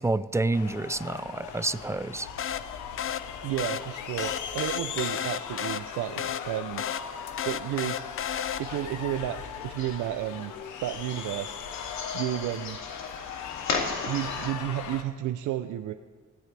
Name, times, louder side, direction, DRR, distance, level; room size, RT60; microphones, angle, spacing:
voice 1, 0.0-2.3, right 2 dB, 10° right, 15 dB, 0.5 m, -28 dB
sound 1, 0.5-15.0, left 8 dB, 80° left, 1.2 m, -39 dB
sound 2, 2.4-9.0, left 9 dB, 45° left, 0.6 m, -34 dB
voice 2, 3.4-6.8 7.4-8.0 8.3-9.4 9.6-10.5 10.8-11.6 12.1-12.8 14.1-15.9, right 13 dB, 85° right, 8 dB, 0.6 m, -32 dB
sound 3, 6.3-14.5, left 4 dB, 65° left, 2.6 m, -39 dB
19.5 x 17.0 x 3.4 m, 1.4 s
cardioid pair, 90°, 30 cm